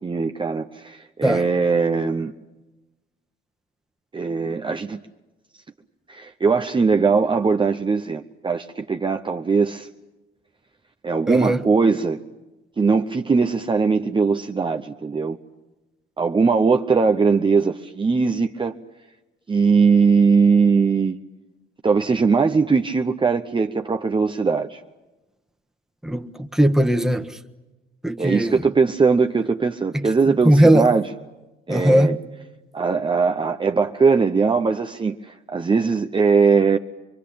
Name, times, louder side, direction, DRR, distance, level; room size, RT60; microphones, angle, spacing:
voice 1, 0.0-2.3 4.1-5.0 6.1-9.9 11.0-12.2 12.8-15.4 16.2-18.8 19.5-21.2 21.8-24.8 28.2-31.0 31.7-32.2 32.7-36.8, right 5 dB, 25° right, 0.9 m, -20 dB
voice 2, 11.3-11.6 26.0-27.4 28.0-28.6 29.9-30.1 30.4-30.9 31.7-32.2, right 1 dB, ahead, 1.5 m, -18 dB
25.5 x 23.0 x 8.6 m
cardioid pair, 90°, 20 cm